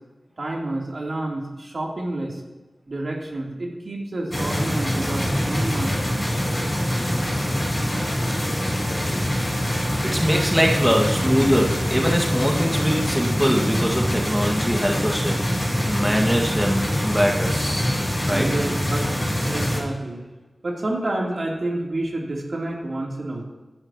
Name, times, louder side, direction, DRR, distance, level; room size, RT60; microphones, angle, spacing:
voice 1, 0.4-2.4 2.9-6.4 18.3-20.2 20.6-23.4, right 2 dB, 60° right, -2 dB, 3.3 m, -29 dB
sound 1, 4.3-19.8, equal, 20° left, 4.8 m, -24 dB
voice 2, 10.0-17.5 18.3-18.5, equal, 5° right, 0 dB, 1.8 m, -22 dB
23.5 x 11.5 x 3.0 m, 1.2 s
wide cardioid pair, 75°, 0 cm